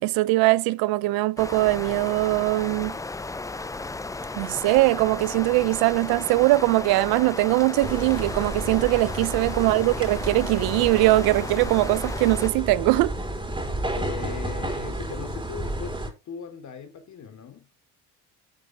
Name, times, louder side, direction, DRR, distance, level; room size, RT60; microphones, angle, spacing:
voice 1, 0.0-3.0 4.4-13.1, right 20 dB, 75° right, 0.7 m, -21 dB
sound 1, 1.4-12.5, left 3 dB, 10° left, 0.5 m, -35 dB
sound 2, 7.8-16.1, right 1 dB, 15° right, 4.0 m, -31 dB
voice 2, 9.2-9.5 13.9-17.7, left 7 dB, 50° left, 3.3 m, -39 dB
11.5 x 6.9 x 3.8 m
supercardioid pair, 85°, 37 cm